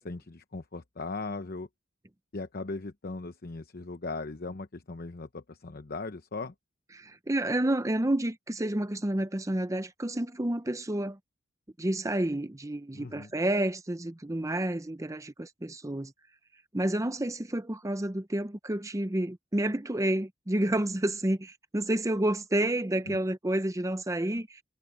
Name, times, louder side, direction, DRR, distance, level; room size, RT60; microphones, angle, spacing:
voice 1, 0.0-1.7 2.3-6.5 12.9-13.3 23.1-23.2, left 3 dB, 50° left, 0.9 m, -38 dB
voice 2, 6.9-11.2 11.8-16.1 16.7-24.6, right 1 dB, 15° right, 0.7 m, -30 dB
head